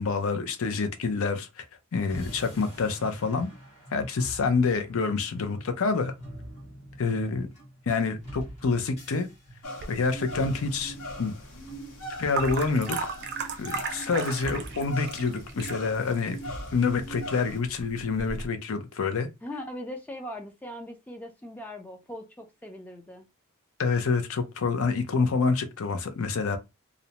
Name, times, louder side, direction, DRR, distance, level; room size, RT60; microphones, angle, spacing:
voice 1, 0.0-1.6 1.9-3.5 3.9-6.1 7.0-7.5 7.9-9.3 9.9-11.3 12.2-13.1 13.6-16.4 16.7-19.3 23.8-26.6, left 4 dB, 65° left, 0.5 m, -27 dB
sound 1, 2.1-18.5, equal, 30° left, 1.1 m, -45 dB
voice 2, 7.1-7.5 19.4-23.3, left 1 dB, 5° left, 0.3 m, -40 dB
sound 2, 9.6-17.6, equal, 85° left, 0.9 m, -41 dB
sound 3, 9.8-18.5, right 5 dB, 50° right, 0.5 m, -38 dB
2.5 x 2.1 x 2.8 m
head